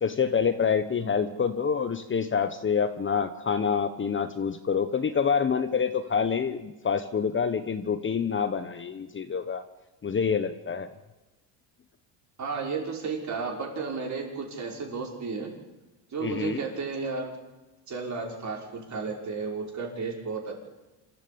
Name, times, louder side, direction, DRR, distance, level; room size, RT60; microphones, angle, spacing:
voice 1, 0.0-9.7 10.0-10.9 16.2-16.6, left 6 dB, 25° left, 10 dB, 1.1 m, -27 dB
voice 2, 1.0-1.3 12.4-15.5 16.1-17.4 17.9-20.6, right 4 dB, 40° right, 1 dB, 5.6 m, -33 dB
27.0 x 14.0 x 8.8 m, 1.1 s
cardioid pair, 130°, 44 cm